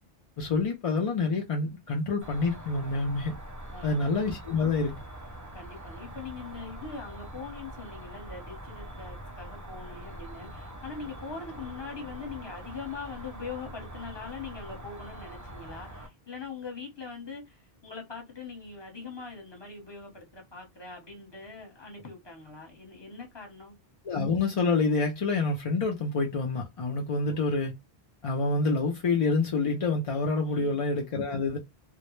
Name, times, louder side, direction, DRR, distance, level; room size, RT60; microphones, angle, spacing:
voice 1, 0.4-3.4 3.8-5.0 24.0-27.7 28.2-31.6, left 3 dB, 55° left, 0.4 m, -27 dB
Cricket, 2.2-16.1, right 1 dB, 30° right, 0.3 m, -44 dB
voice 2, 5.5-23.8 27.2-27.4 30.5-30.9, left 4 dB, 25° left, 0.9 m, -42 dB
2.0 x 2.0 x 3.0 m
omnidirectional pair, 1.1 m